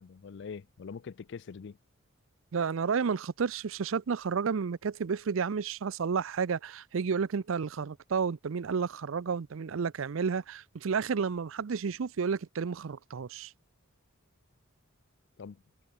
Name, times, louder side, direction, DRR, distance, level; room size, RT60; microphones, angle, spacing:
voice 1, 0.0-1.8 15.4-15.6, left 5 dB, 55° left, 0.4 m, -43 dB
voice 2, 2.5-13.5, right 6 dB, 65° right, 0.5 m, -31 dB
head